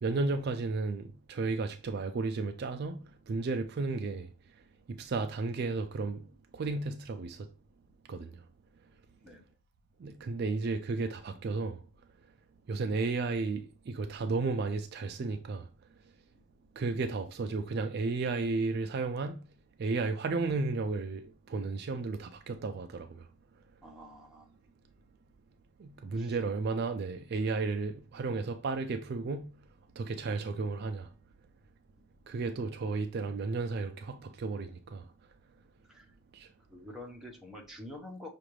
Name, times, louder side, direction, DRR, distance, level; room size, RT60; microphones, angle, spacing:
voice 1, 0.0-4.3 4.9-6.3 6.5-7.5 8.1-8.4 10.0-11.8 12.7-15.7 16.8-19.5 19.8-23.3 25.8-29.6 30.0-31.1 32.3-35.1 36.3-36.5, right 3 dB, 50° right, 0.4 m, -33 dB
voice 2, 23.8-24.5 26.1-26.4 35.9-36.1 36.7-38.3, left 1 dB, ahead, 0.9 m, -47 dB
5.8 x 2.5 x 3.1 m
head